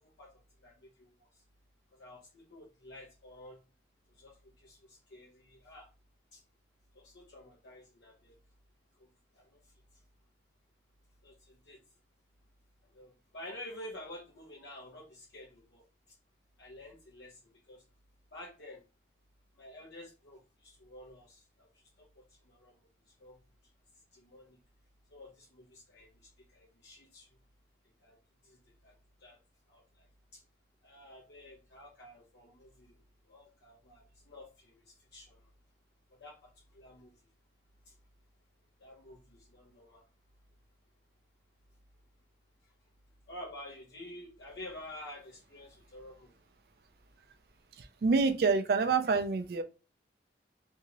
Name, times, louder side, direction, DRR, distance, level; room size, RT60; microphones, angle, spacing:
voice 1, 0.0-1.4 1.9-3.6 4.1-5.9 6.3-6.4 6.9-8.4 9.0-9.1 9.3-10.0 11.2-11.8 12.9-16.2 16.6-17.8 18.3-18.8 19.6-23.4 24.1-24.6 25.1-27.3 28.0-28.2 28.4-29.4 29.7-30.1 30.3-30.4 30.8-35.5 36.2-37.1 37.9-38.0 38.8-40.0 42.6-42.7 43.3-46.3, left 1 dB, 80° left, 0.7 m, -51 dB
voice 2, 47.7-49.6, right 4 dB, 60° right, 0.3 m, -27 dB
2.8 x 2.7 x 2.8 m
head